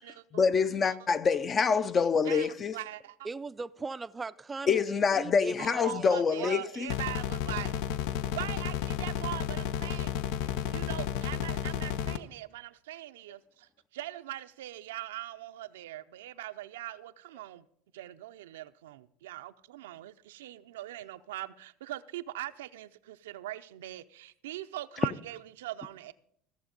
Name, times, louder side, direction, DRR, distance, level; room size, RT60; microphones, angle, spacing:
voice 1, 0.3-2.7 4.7-6.9, left 5 dB, 30° left, 0.5 m, -26 dB
voice 2, 2.2-3.2 5.6-7.7 8.3-10.1 10.4-17.6 17.9-26.1, right 15 dB, 90° right, 0.5 m, -41 dB
voice 3, 3.2-6.1 6.4-6.6, right 4 dB, 20° right, 0.4 m, -39 dB
sound 1, 6.9-12.2, left 9 dB, 75° left, 0.6 m, -32 dB
15.0 x 7.1 x 5.2 m
supercardioid pair, 100°, 0 cm